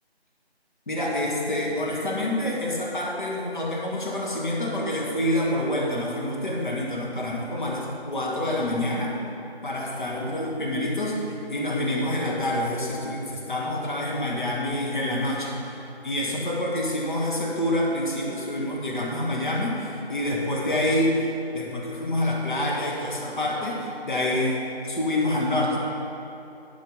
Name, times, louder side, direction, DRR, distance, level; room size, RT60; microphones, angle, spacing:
voice 1, 0.9-9.2 9.6-11.2 11.5-15.5 16.0-21.3 21.5-25.8, left 1 dB, 50° left, -3 dB, 1.6 m, -27 dB
11.0 x 5.0 x 5.3 m, 2.9 s
figure-of-eight pair, 165°, 32 cm